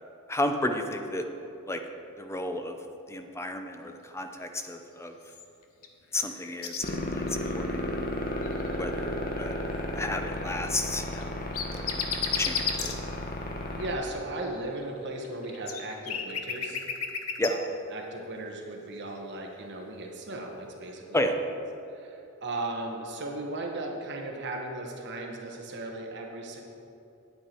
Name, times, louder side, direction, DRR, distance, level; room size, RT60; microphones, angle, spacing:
voice 1, 0.3-1.2 1.7-1.8 2.2-2.8 3.1-5.1 6.1-8.0 8.7-9.6 9.9-11.4 11.7-12.0 12.3-12.9 17.4-17.5 21.1-21.3, left 1 dB, 15° left, 6 dB, 0.6 m, -32 dB
sound 1, 5.3-5.9 6.2-6.9 7.3-7.5 8.4-8.7 11.1-12.9 14.4-17.5, left 6 dB, 80° left, 0.9 m, -33 dB
sound 2, 6.8-14.0, left 1 dB, 45° left, 0.9 m, -33 dB
voice 2, 13.7-16.8 17.5-17.6 17.9-21.3 21.9-26.6, right 2 dB, 55° right, 1 dB, 1.2 m, -36 dB
9.4 x 9.3 x 4.5 m, 2.7 s
head